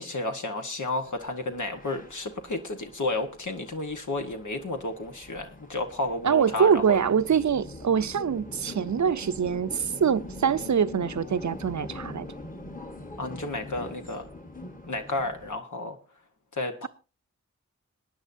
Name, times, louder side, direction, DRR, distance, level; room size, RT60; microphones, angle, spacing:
voice 1, 0.0-7.0 13.2-14.3 14.9-16.0 16.5-16.9, left 2 dB, 85° left, 1.2 m, -32 dB
sound 1, 1.1-15.6, left 2 dB, 30° left, 1.3 m, -43 dB
voice 2, 6.2-12.3, right 7 dB, 75° right, 0.5 m, -24 dB
22.0 x 9.8 x 2.6 m
wide cardioid pair, 60°, 29 cm